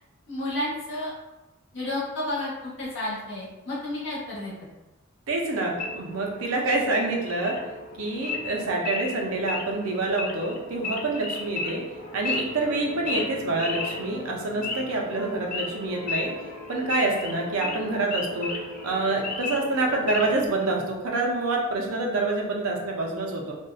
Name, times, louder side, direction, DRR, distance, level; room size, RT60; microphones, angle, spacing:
voice 1, 0.3-1.1 1.7-4.5, left 1 dB, 60° left, -7 dB, 1.0 m, -31 dB
voice 2, 5.3-7.6 8.0-11.8 12.1-16.3 16.7-18.5 18.8-23.6, right 2 dB, 85° right, 0 dB, 0.5 m, -27 dB
Wild animals / Idling, 5.8-20.5, left 3 dB, 40° left, 0.3 m, -35 dB
sound 1, 12.0-20.5, equal, 20° right, 0.5 m, -45 dB
2.6 x 2.1 x 2.3 m, 1.0 s
head